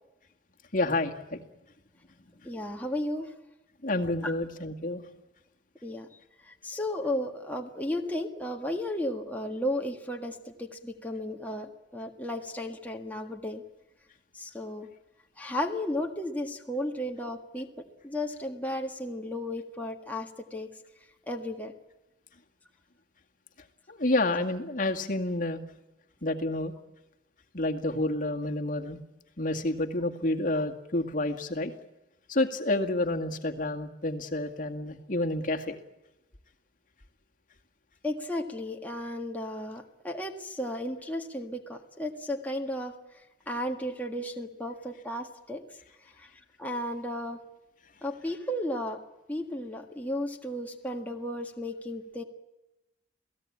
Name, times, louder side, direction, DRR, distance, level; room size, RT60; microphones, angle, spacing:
voice 1, 0.7-1.4 3.8-5.0 23.9-25.6 26.2-26.7 27.5-29.0 29.4-31.7 32.3-35.8, left 2 dB, 45° left, 4 dB, 2.1 m, -29 dB
voice 2, 2.4-3.3 4.2-4.3 5.8-6.1 6.4-13.6 14.3-14.9 15.4-20.7 21.3-21.7 38.0-45.8 46.1-46.3 46.6-47.4 48.0-49.0 49.3-52.2, left 1 dB, 10° left, 1 dB, 1.7 m, -34 dB
28.5 x 18.0 x 8.7 m, 0.99 s
head